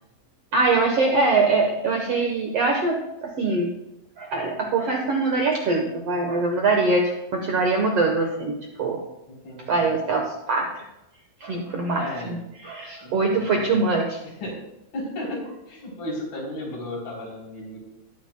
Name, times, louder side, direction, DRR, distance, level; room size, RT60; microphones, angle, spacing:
voice 1, 0.5-3.0 3.2-3.7 4.2-9.0 9.7-10.8 11.4-12.4 12.6-14.0, right 3 dB, 65° right, 1 dB, 1.6 m, -23 dB
voice 2, 9.3-10.0 12.0-12.4 13.0-13.8 14.4-14.6 14.9-17.8, left 1 dB, 75° left, -3 dB, 5.4 m, -34 dB
19.5 x 9.3 x 2.2 m, 0.88 s
omnidirectional pair, 4.2 m